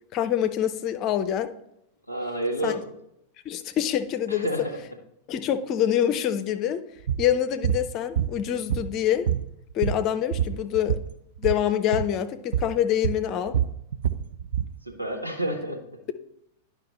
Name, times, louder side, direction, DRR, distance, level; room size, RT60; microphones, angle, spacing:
voice 1, 0.1-1.5 2.6-2.7 3.4-4.5 5.3-6.9 7.2-9.3 9.7-11.0 11.4-13.6, left 10 dB, 35° left, 11 dB, 0.6 m, -25 dB
voice 2, 2.1-2.8 4.3-4.8 14.8-16.0, right 1 dB, 90° right, 0 dB, 1.4 m, -29 dB
sound 1, 7.1-7.3 7.6-7.8 8.2-9.0 9.3-11.1 11.4-11.6 11.9-12.1 12.5-12.7 13.0-14.7, right 9 dB, 60° right, 0.5 m, -26 dB
11.0 x 5.5 x 3.1 m, 0.79 s
figure-of-eight pair, 90°, 0 cm